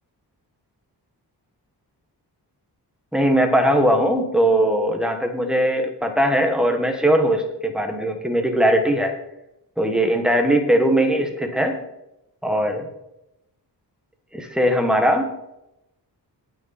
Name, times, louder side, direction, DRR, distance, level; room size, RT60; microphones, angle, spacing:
voice 1, 3.1-9.1 9.8-11.8 12.4-12.9 14.3-15.3, right 1 dB, ahead, 3 dB, 1.3 m, -20 dB
18.5 x 6.2 x 4.2 m, 0.88 s
wide cardioid pair, 165°, 41 cm